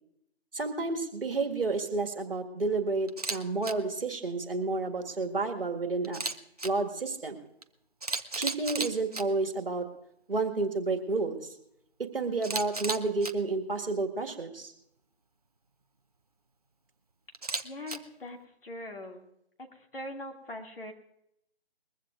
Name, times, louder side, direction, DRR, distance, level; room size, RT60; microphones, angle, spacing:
voice 1, 0.5-6.2 6.6-7.4 8.4-9.9 10.3-11.5 12.0-14.7, right 3 dB, 60° right, 4 dB, 1.9 m, -30 dB
Camera, 3.1-3.4 3.6-3.7 6.0-6.7 7.6-7.7 8.0-9.2 12.4-13.3 17.3-18.0, right 3 dB, 35° right, 0.6 m, -33 dB
voice 2, 17.6-18.4 18.6-19.3 19.6-20.9, left 1 dB, 55° left, 1 dB, 2.5 m, -41 dB
21.5 x 15.0 x 2.5 m, 0.77 s
figure-of-eight pair, 165°, 33 cm